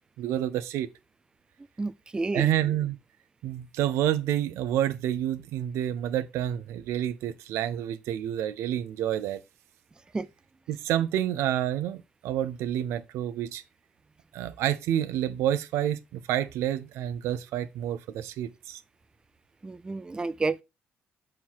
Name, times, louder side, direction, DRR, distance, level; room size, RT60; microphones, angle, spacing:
voice 1, 0.2-0.9 2.3-3.0 3.4-9.4 10.7-13.6 14.3-18.8, right 11 dB, 85° right, 0.6 m, -29 dB
voice 2, 1.8-2.5 10.1-10.3 19.6-20.6, right 3 dB, 20° right, 0.4 m, -30 dB
5.7 x 4.4 x 4.6 m
cardioid pair, 90°, 5 cm